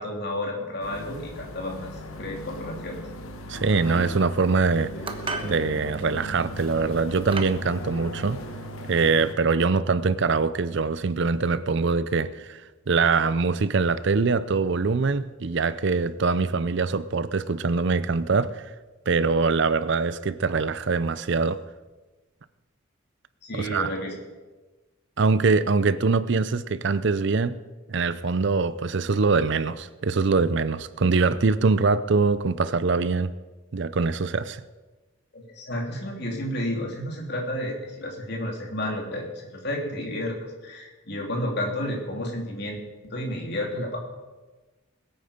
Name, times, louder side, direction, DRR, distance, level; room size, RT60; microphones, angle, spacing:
voice 1, 0.0-3.0 23.4-24.1 35.3-40.4 40.6-42.8 43.1-44.0, left 1 dB, 50° left, 0 dB, 3.0 m, -31 dB
sound 1, 0.8-9.3, equal, 80° left, 1.4 m, -38 dB
voice 2, 3.5-4.9 5.4-8.4 8.9-12.6 12.9-18.7 19.1-21.6 23.5-23.9 25.2-27.6 27.9-33.3 33.7-34.6, right 4 dB, 55° right, 15 dB, 0.5 m, -23 dB
sound 2, 5.0-5.6 6.5-6.7 7.3-7.6, right 4 dB, 25° right, 1.1 m, -32 dB
20.5 x 9.0 x 5.1 m, 1.2 s
head